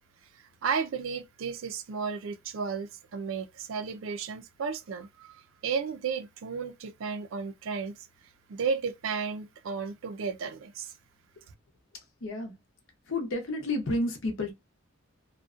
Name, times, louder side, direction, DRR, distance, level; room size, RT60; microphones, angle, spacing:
voice 1, 0.6-7.9 8.5-10.9, right 5 dB, 70° right, 0.4 m, -33 dB
voice 2, 11.9-12.6 13.1-14.5, left 2 dB, 65° left, 0.8 m, -31 dB
2.5 x 2.2 x 2.4 m
head